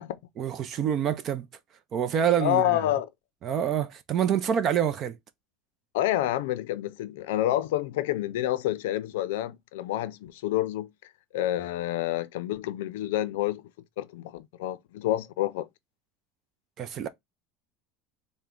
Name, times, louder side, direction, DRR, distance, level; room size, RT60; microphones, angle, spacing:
voice 1, 0.4-1.5 1.9-2.8 3.4-5.2 16.8-17.1, right 9 dB, 35° right, 0.5 m, -26 dB
voice 2, 2.4-3.1 5.9-10.9 11.3-13.6 14.0-15.7, left 13 dB, 90° left, 0.5 m, -28 dB
4.3 x 2.1 x 3.7 m
supercardioid pair, 150°, 0 cm